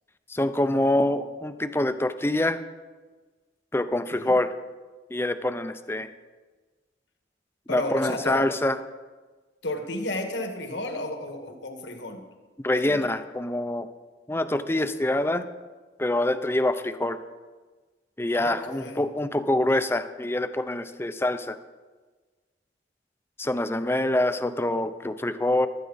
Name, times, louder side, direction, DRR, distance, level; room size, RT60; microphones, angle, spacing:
voice 1, 0.3-2.6 3.7-4.5 5.1-6.1 7.7-8.8 12.6-13.9 14.3-15.4 16.0-17.2 18.2-21.6 23.4-25.7, left 1 dB, 15° left, 10 dB, 0.6 m, -25 dB
voice 2, 7.7-8.4 9.6-12.3 12.8-13.0 18.3-19.0, left 1 dB, 75° left, 4 dB, 1.8 m, -33 dB
15.5 x 12.5 x 4.1 m, 1.3 s
head